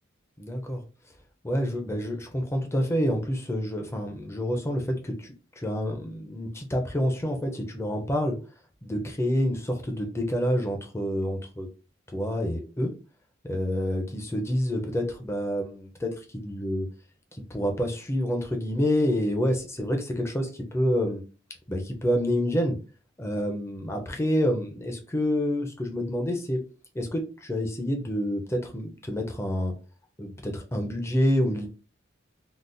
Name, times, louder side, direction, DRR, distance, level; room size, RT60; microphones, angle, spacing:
voice 1, 0.4-0.8 1.4-8.4 8.8-11.7 12.1-12.9 13.5-16.9 17.5-21.2 21.7-22.8 23.2-26.6 26.9-29.7 30.2-31.7, equal, 15° left, 3 dB, 0.5 m, -28 dB
3.8 x 2.1 x 2.5 m, 0.35 s
head